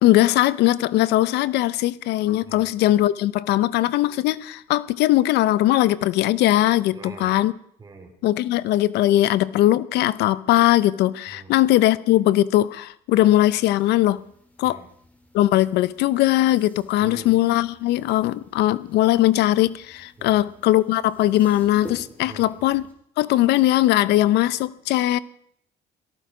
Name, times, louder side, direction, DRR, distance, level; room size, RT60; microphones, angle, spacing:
voice 1, 0.0-7.5 8.2-14.2 14.6-14.8 15.3-22.8 23.2-25.2, left 15 dB, 85° left, 17 dB, 0.8 m, -20 dB
voice 2, 6.9-7.3 7.8-8.1 11.3-11.5 14.6-14.9 17.0-17.3 20.2-20.4 22.2-22.5, right 3 dB, 25° right, 3 dB, 4.3 m, -42 dB
sound 1, 13.1-22.9, left 1 dB, 10° left, 4.3 m, -49 dB
18.0 x 14.5 x 5.0 m, 0.66 s
cardioid pair, 110°, 17 cm